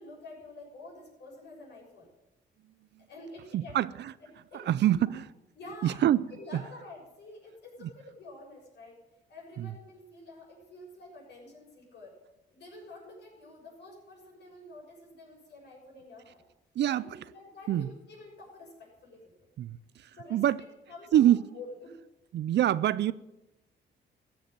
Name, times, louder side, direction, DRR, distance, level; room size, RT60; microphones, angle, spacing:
voice 1, 0.0-2.1 3.1-3.8 4.5-5.1 5.6-6.0 6.3-9.0 9.3-12.1 12.5-16.5 16.8-19.3 20.1-20.4 20.9-22.0, left 2 dB, 60° left, 6.8 m, -48 dB
voice 2, 3.5-4.1 4.5-5.3 5.8-6.2 7.8-7.9 9.6-9.7 16.8-17.2 17.7-17.9 19.6-20.6 21.1-21.5 22.3-23.1, right 12 dB, 60° right, 0.5 m, -26 dB
14.0 x 7.9 x 9.1 m
cardioid pair, 90°, 20 cm